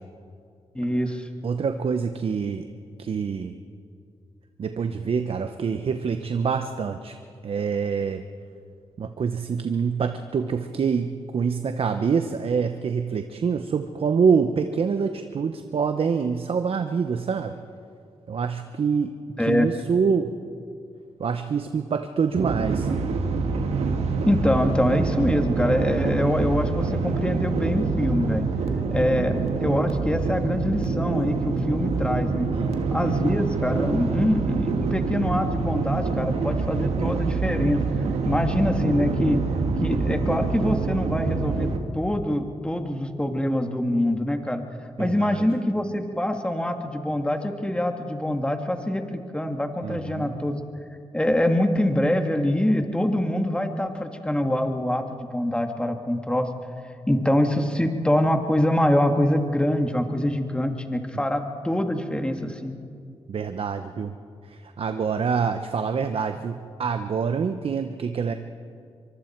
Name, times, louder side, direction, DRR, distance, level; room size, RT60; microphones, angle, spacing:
voice 1, 0.7-1.3 19.4-19.7 24.3-28.5 28.9-32.5 32.9-37.8 38.2-39.4 39.8-44.6 45.0-50.6 51.1-56.5 57.1-62.7, left 1 dB, 10° left, 5 dB, 2.2 m, -24 dB
voice 2, 1.4-2.6 3.0-3.6 4.6-7.2 7.4-8.2 9.0-17.6 18.3-19.1 19.4-20.3 21.2-22.9 32.5-33.2 45.0-45.4 49.8-50.3 61.1-61.2 63.3-64.1 64.5-68.3, right 6 dB, 65° right, 8 dB, 0.9 m, -26 dB
sound 1, 22.3-41.8, right 4 dB, 85° right, 1.7 m, -26 dB
24.5 x 24.0 x 4.6 m, 2.3 s
cardioid pair, 60°, 11 cm